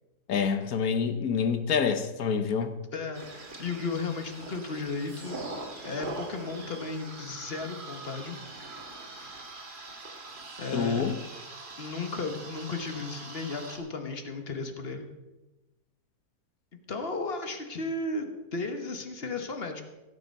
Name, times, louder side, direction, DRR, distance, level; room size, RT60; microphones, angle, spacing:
voice 1, 0.3-2.8 10.7-11.2, left 6 dB, 70° left, 8 dB, 1.4 m, -27 dB
voice 2, 2.9-3.3 3.6-5.4 5.8-8.4 10.6-11.1 11.8-15.1 16.9-19.8, left 3 dB, 40° left, 6 dB, 1.3 m, -34 dB
sound 1, 3.1-13.8, right 2 dB, 35° right, 1.7 m, -42 dB
16.5 x 7.2 x 5.3 m, 1.1 s
omnidirectional pair, 1.7 m